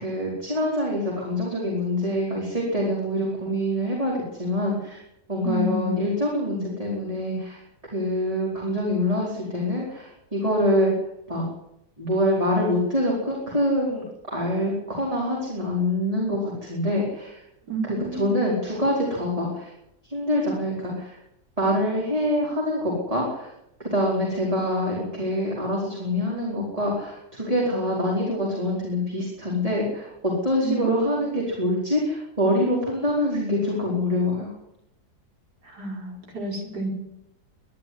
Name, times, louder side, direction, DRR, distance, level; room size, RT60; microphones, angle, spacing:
voice 1, 0.0-5.0 5.3-7.6 7.9-10.9 11.3-11.5 12.0-17.4 17.8-19.7 20.1-21.2 21.6-23.5 23.8-34.5, left 1 dB, 20° right, -3 dB, 4.9 m, -25 dB
voice 2, 5.4-6.0 17.7-18.5 30.6-31.4 35.6-36.9, right 2 dB, 75° right, 1 dB, 5.4 m, -31 dB
23.0 x 11.5 x 9.7 m, 0.83 s
omnidirectional pair, 1.7 m